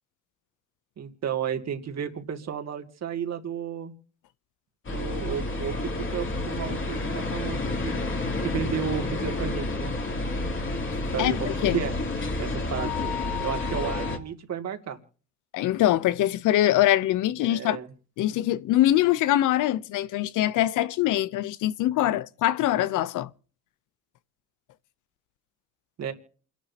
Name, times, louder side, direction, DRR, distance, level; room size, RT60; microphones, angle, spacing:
voice 1, 1.0-3.9 4.9-7.9 8.4-9.9 11.1-11.9 12.4-12.9 13.4-15.0 17.4-17.9 26.0-26.1, right 8 dB, 60° right, 2.3 m, -33 dB
sound 1, 4.8-14.2, left 2 dB, 40° left, 2.9 m, -30 dB
voice 2, 11.2-11.8 15.5-17.8 18.2-23.3, left 13 dB, 85° left, 0.7 m, -23 dB
28.0 x 11.5 x 2.8 m
cardioid pair, 90°, 30 cm